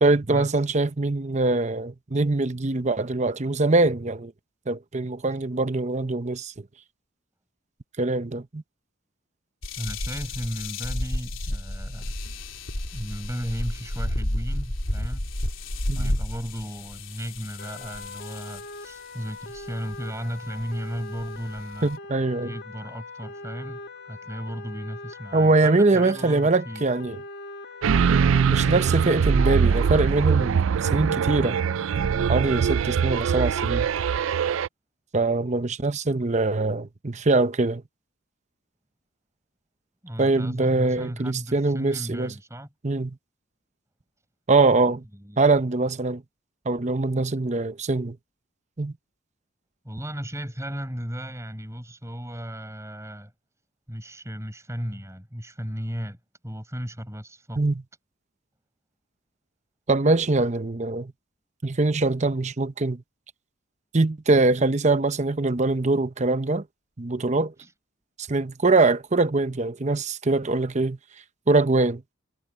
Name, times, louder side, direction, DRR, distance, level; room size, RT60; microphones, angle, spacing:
voice 1, 0.0-4.3 4.7-6.5 8.0-8.6 15.9-16.2 21.8-22.5 25.3-27.2 28.1-31.6 32.3-33.9 35.1-37.8 40.2-42.3 42.8-43.2 44.5-45.0 45.4-46.2 46.7-48.2 48.8-48.9 57.6-57.7 59.9-61.1 61.6-63.0 63.9-66.6 67.0-67.5 68.3-71.0 71.5-72.0, right 3 dB, 35° right, 0.8 m, -23 dB
sound 1, 9.6-18.8 19.6-20.0 20.6-20.7 21.2-21.9, left 1 dB, 70° left, 4.0 m, -31 dB
voice 2, 9.8-12.1 12.9-15.3 15.9-21.9 22.4-23.8 24.1-26.8 40.0-42.7 45.1-45.4 49.8-53.3 53.9-56.2 56.4-57.7 67.6-67.7, equal, 15° right, 7.7 m, -35 dB
sound 2, 17.6-30.1, left 2 dB, 55° left, 2.0 m, -41 dB
sound 3, 27.8-34.7, right 6 dB, 70° right, 0.4 m, -22 dB
head